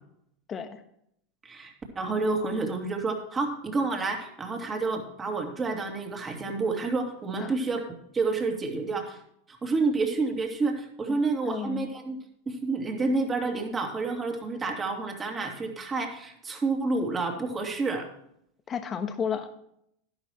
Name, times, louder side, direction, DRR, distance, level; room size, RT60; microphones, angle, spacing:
voice 1, 0.5-0.8 7.4-7.6 11.1-11.9 18.7-19.5, left 7 dB, 30° left, 7 dB, 1.3 m, -33 dB
voice 2, 1.4-7.8 8.1-9.2 9.5-12.2 12.5-18.1, right 3 dB, 25° right, 2 dB, 2.7 m, -29 dB
12.0 x 11.5 x 3.1 m, 0.72 s
hypercardioid pair, 95°, 0 cm